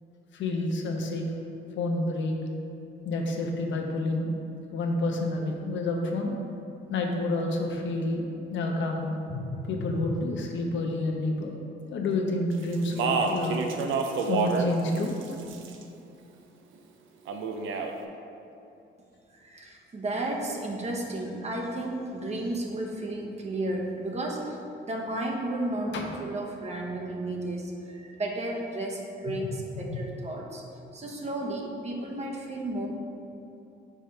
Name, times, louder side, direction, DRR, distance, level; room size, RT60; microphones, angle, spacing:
voice 1, 0.3-1.3 1.8-2.3 3.0-4.3 4.7-6.3 6.9-8.2 8.5-11.5 11.9-13.6 14.3-15.2 25.9-26.0 29.7-30.0, left 2 dB, 70° left, 1 dB, 0.9 m, -29 dB
Speech, 12.7-14.7 15.0-15.8 17.3-17.9, right 5 dB, 80° right, 0.6 m, -28 dB
voice 2, 19.3-30.6 30.9-32.9, right 1 dB, 35° right, 0 dB, 1.0 m, -33 dB
5.0 x 4.3 x 5.1 m, 2.8 s
cardioid pair, 90°, 20 cm